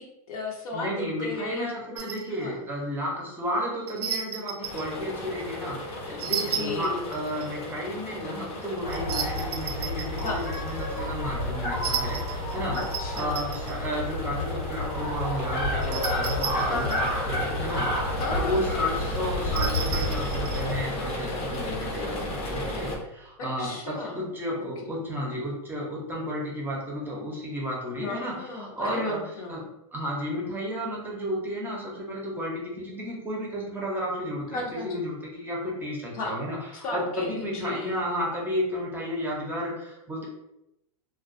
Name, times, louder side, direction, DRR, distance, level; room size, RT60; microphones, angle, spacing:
voice 1, 0.0-1.8 2.3-2.6 6.4-7.1 10.2-10.5 12.8-13.4 16.7-17.1 18.2-18.7 23.4-24.2 24.8-24.9 28.0-29.6 34.5-35.0 36.1-36.4 36.8-37.9, left 3 dB, 65° left, 1 dB, 0.7 m, -34 dB
voice 2, 0.7-12.8 13.1-29.6 29.9-40.3, equal, 10° right, -3 dB, 0.6 m, -32 dB
sound 1, 2.0-2.3 3.9-4.9 6.2-7.5 8.9-10.8 11.8-13.7 15.8-17.1 19.4-20.7, right 7 dB, 90° right, 0.5 m, -34 dB
sound 2, 4.6-23.0, left 1 dB, 30° left, 0.6 m, -35 dB
sound 3, 8.8-20.8, left 1 dB, 85° left, 1.3 m, -30 dB
2.2 x 2.2 x 2.5 m, 0.86 s
hypercardioid pair, 130°, 19 cm